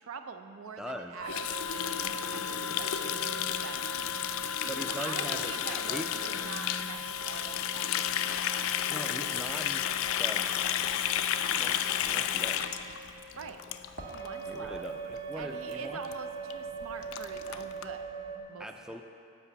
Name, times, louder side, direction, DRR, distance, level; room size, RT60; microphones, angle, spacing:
voice 1, 0.0-2.0 2.7-3.9 4.4-8.0 13.3-13.6 14.1-14.9 15.4-18.1 18.5-18.7, right 5 dB, 85° right, 8 dB, 0.5 m, -44 dB
voice 2, 0.8-1.2 4.7-6.4 8.9-10.6 11.5-11.8 12.0-12.7 14.5-16.0 18.6-19.0, equal, 5° right, 4 dB, 0.3 m, -41 dB
sound 1, 1.2-18.4, right 2 dB, 45° right, 0.9 m, -41 dB
Water tap faucet, 1.3-14.3 14.6-14.8 15.1-15.4 15.7-15.8 16.0-16.1 16.5-16.6 16.8-17.9, left 10 dB, 85° left, 0.3 m, -32 dB
8.4 x 5.3 x 6.8 m, 2.6 s
head